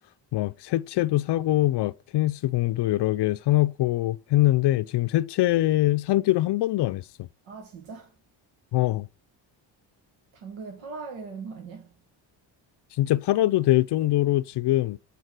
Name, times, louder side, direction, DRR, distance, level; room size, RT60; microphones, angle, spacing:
voice 1, 0.3-7.0 8.7-9.1 13.0-15.0, left 16 dB, 60° left, 0.5 m, -23 dB
voice 2, 7.5-8.1 10.3-11.9, right 5 dB, 85° right, 1.8 m, -40 dB
8.1 x 4.2 x 5.7 m
cardioid pair, 75°, 47 cm